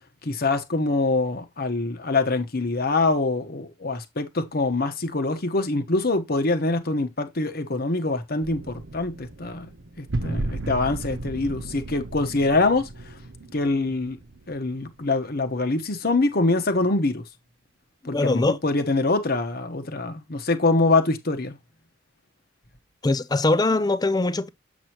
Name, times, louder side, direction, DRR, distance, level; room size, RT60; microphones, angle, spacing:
voice 1, 0.2-9.7 10.0-12.9 13.5-14.2 14.5-17.2 18.0-21.6, left 3 dB, 55° left, 1.2 m, -24 dB
sound 1, 8.4-15.2, right 2 dB, 80° right, 0.9 m, -35 dB
voice 2, 18.1-18.6 23.0-24.5, left 2 dB, 20° left, 0.5 m, -22 dB
7.6 x 6.3 x 3.0 m
head